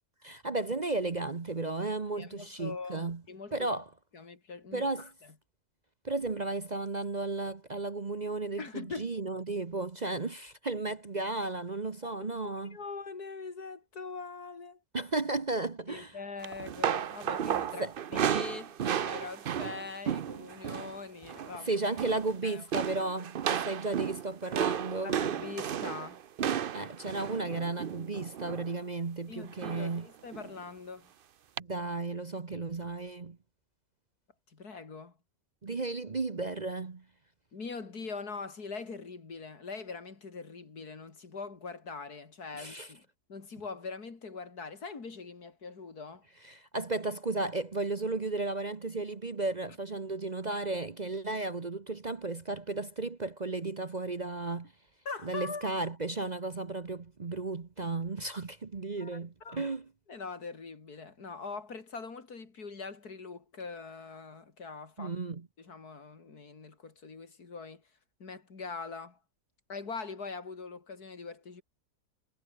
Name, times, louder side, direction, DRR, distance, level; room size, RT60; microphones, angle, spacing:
voice 1, 0.2-3.2 3.5-3.9 4.7-5.1 6.0-12.8 14.9-16.2 17.8-17.9 21.6-25.2 26.7-30.1 31.6-33.4 35.6-37.0 42.5-42.9 46.4-54.7 55.2-59.8 65.0-65.5, right 3 dB, 30° right, 1.0 m, -34 dB
voice 2, 2.2-3.7 4.1-5.1 8.6-9.1 12.0-12.3 12.7-14.8 15.9-17.8 18.1-21.7 22.4-22.6 25.0-26.2 29.3-31.1 34.5-35.1 37.5-43.0 43.3-46.2 55.0-55.7 59.0-59.8 60.1-65.1 65.6-67.8 68.2-69.2 69.7-71.6, left 4 dB, 75° left, 3.4 m, -42 dB
sound 1, 16.4-21.0 21.2-21.6 21.8-22.3 22.7-28.7 29.6-30.0 30.3-30.5 31.6-31.7, right 9 dB, 55° right, 0.6 m, -33 dB
omnidirectional pair, 1.6 m